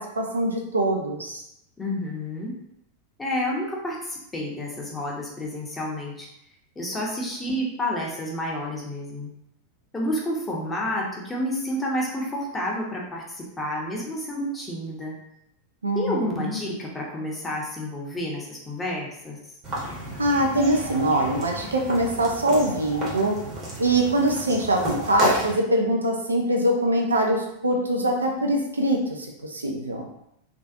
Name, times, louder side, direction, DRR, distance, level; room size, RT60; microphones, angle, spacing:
voice 1, 0.0-1.4 15.8-16.6 20.2-23.3 23.8-30.1, right 1 dB, 75° right, 1 dB, 0.4 m, -23 dB
voice 2, 1.8-2.6 3.2-6.3 6.8-9.3 9.9-15.2 15.9-19.4, left 1 dB, 15° left, -3 dB, 0.7 m, -30 dB
sound 1, 19.6-25.5, right 1 dB, 30° right, 0.9 m, -31 dB
2.5 x 2.3 x 2.4 m, 0.79 s
figure-of-eight pair, 90°, 0 cm